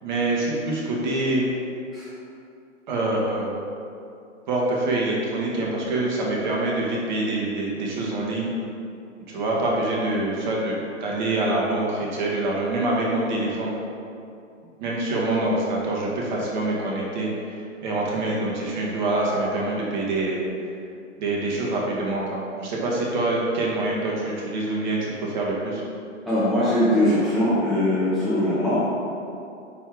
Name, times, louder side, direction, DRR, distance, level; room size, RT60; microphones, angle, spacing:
voice 1, 0.0-1.5 2.9-3.5 4.5-8.5 9.3-13.7 14.8-20.4 21.2-25.8, right 2 dB, 35° right, -4 dB, 1.6 m, -25 dB
voice 2, 26.3-28.9, left 1 dB, ahead, -11 dB, 1.0 m, -21 dB
9.0 x 3.5 x 4.9 m, 2.6 s
figure-of-eight pair, 120°, 38 cm